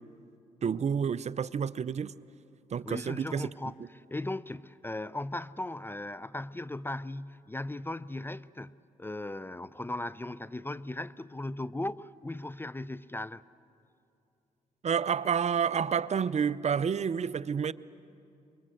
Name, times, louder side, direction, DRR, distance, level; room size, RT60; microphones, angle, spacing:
voice 1, 0.6-2.1 2.7-3.5 14.8-17.7, right 7 dB, 45° right, 0.5 m, -29 dB
voice 2, 2.9-13.4, left 2 dB, 15° left, 0.5 m, -38 dB
24.5 x 22.0 x 7.8 m
supercardioid pair, 60°, 15 cm